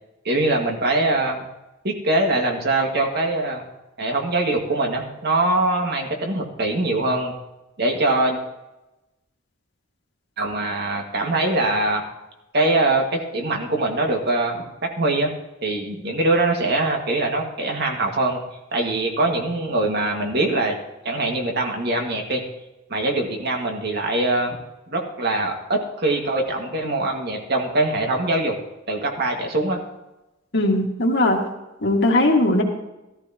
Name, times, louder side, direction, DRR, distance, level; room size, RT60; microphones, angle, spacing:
voice 1, 0.3-1.4 1.8-3.7 4.0-7.3 7.8-8.4 10.4-12.1 12.5-14.7 15.0-15.3 15.6-18.4 18.7-20.8 21.0-22.4 22.9-24.6 24.9-28.6 28.9-29.8, right 2 dB, 60° right, 2 dB, 2.0 m, -22 dB
voice 2, 30.5-31.4 31.8-32.6, left 1 dB, 60° left, 0 dB, 2.0 m, -19 dB
14.5 x 13.5 x 3.0 m, 0.99 s
head